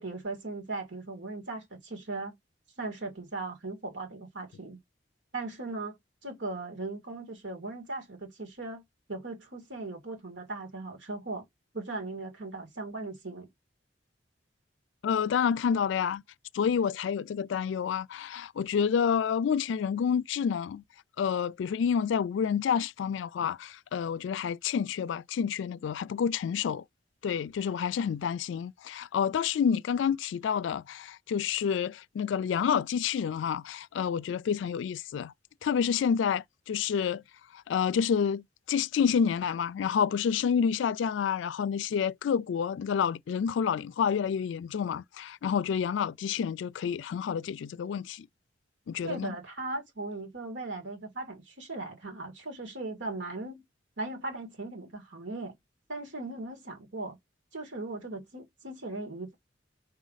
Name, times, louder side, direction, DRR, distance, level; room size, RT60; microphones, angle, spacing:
voice 1, 0.0-2.4 2.8-4.8 5.3-6.0 6.2-8.8 9.1-11.4 11.7-13.5 49.0-53.6 54.0-55.5 55.9-57.2 57.5-59.3, right 2 dB, 85° right, 2.1 m, -38 dB
voice 2, 15.0-16.2 16.5-20.8 21.2-26.8 27.2-35.3 35.6-37.2 37.5-48.3 48.9-49.3, left 7 dB, 80° left, 0.3 m, -29 dB
5.5 x 5.0 x 4.0 m
head